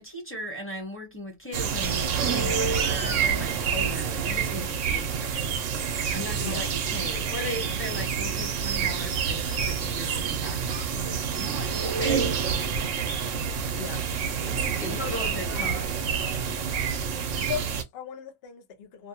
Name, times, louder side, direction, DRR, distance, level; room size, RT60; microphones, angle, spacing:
voice 1, 0.0-5.4 6.1-13.3 13.6-13.9 14.5-15.9, equal, 10° left, 0.9 m, -38 dB
sound 1, 1.5-17.8, right 6 dB, 75° right, 1.0 m, -28 dB
voice 2, 14.8-16.0 16.6-16.9 17.4-19.1, left 6 dB, 60° left, 0.8 m, -38 dB
2.6 x 2.2 x 2.7 m
omnidirectional pair, 1.3 m